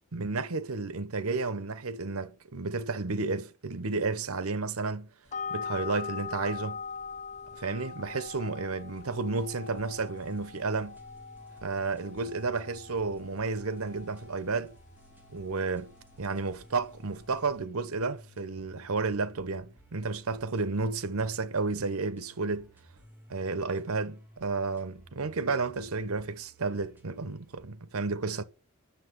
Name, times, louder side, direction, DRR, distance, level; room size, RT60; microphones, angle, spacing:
voice 1, 0.1-5.1 5.5-6.8 7.5-11.0 11.6-14.7 15.3-15.9 16.2-22.7 23.3-28.4, right 4 dB, 75° right, 0.9 m, -32 dB
sound 1, 5.3-17.6, left 5 dB, 30° left, 0.5 m, -43 dB
sound 2, 8.9-27.7, right 1 dB, 10° right, 3.1 m, -56 dB
10.0 x 6.7 x 7.9 m
head